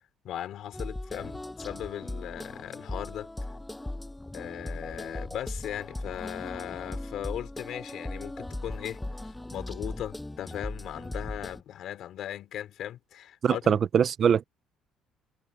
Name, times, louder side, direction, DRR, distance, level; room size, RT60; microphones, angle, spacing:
voice 1, 0.2-3.3 4.3-13.8, left 11 dB, 60° left, 4.3 m, -38 dB
sound 1, 0.7-11.6, left 1 dB, 10° left, 7.1 m, -38 dB
voice 2, 13.4-14.4, right 7 dB, 40° right, 0.8 m, -23 dB
cardioid pair, 130°, 0 cm